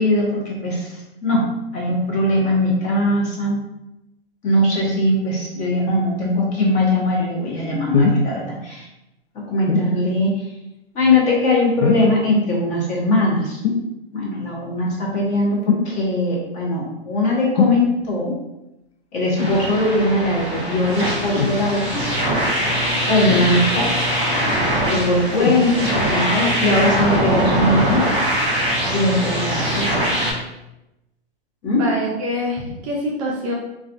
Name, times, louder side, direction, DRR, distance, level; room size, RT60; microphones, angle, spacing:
voice 1, 0.0-1.5 1.7-3.6 4.4-8.8 9.3-10.5 10.9-13.6 14.1-18.4 19.1-22.0 23.1-24.5 24.9-28.0 28.9-30.0 31.6-31.9, left 1 dB, 25° left, -4 dB, 0.6 m, -20 dB
sound 1, 7.9-8.3 9.7-9.9 11.8-12.2 13.6-13.9 15.7-15.9 17.6-17.8 19.4-19.6 21.3-21.6 23.3-23.8 25.4-25.7 26.5-26.6, left 4 dB, 80° left, 0.5 m, -20 dB
sound 2, 19.3-30.3, equal, 15° right, 0.9 m, -22 dB
voice 2, 31.7-33.5, equal, 35° right, -3 dB, 0.4 m, -25 dB
2.3 x 2.2 x 2.5 m, 0.92 s
hypercardioid pair, 130°, 31 cm